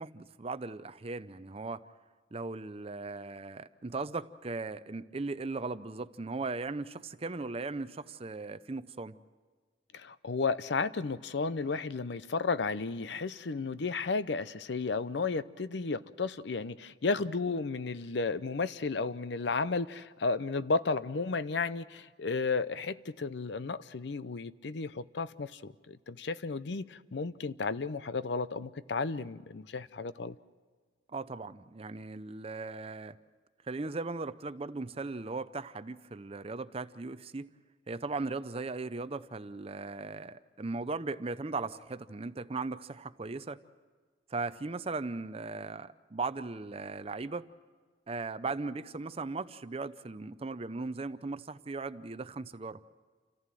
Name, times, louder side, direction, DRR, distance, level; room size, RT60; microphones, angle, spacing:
voice 1, 0.0-1.8 2.3-9.2 31.1-33.2 33.7-37.5 37.9-43.6 44.3-47.5 48.1-52.8, right 3 dB, 30° right, 0.6 m, -38 dB
voice 2, 9.9-30.4, left 4 dB, 65° left, 0.6 m, -33 dB
28.5 x 14.5 x 7.6 m
head